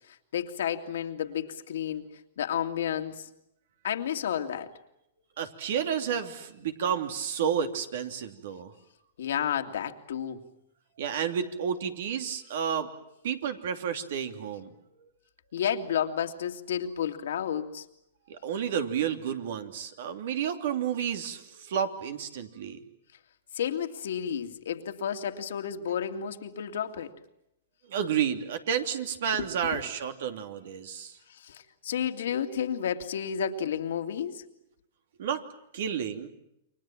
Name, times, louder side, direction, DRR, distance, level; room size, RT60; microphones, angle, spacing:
voice 1, 0.1-2.1 2.4-3.3 3.8-4.7 9.2-10.4 15.5-17.8 23.5-27.1 29.3-29.8 31.3-34.4, left 8 dB, 80° left, 5 dB, 2.4 m, -31 dB
voice 2, 5.4-8.7 11.0-12.9 13.2-14.7 18.3-22.8 27.9-31.2 35.2-35.4 35.7-36.3, right 8 dB, 70° right, 7 dB, 2.9 m, -31 dB
29.0 x 24.0 x 7.5 m, 0.83 s
hypercardioid pair, 130°, 0 cm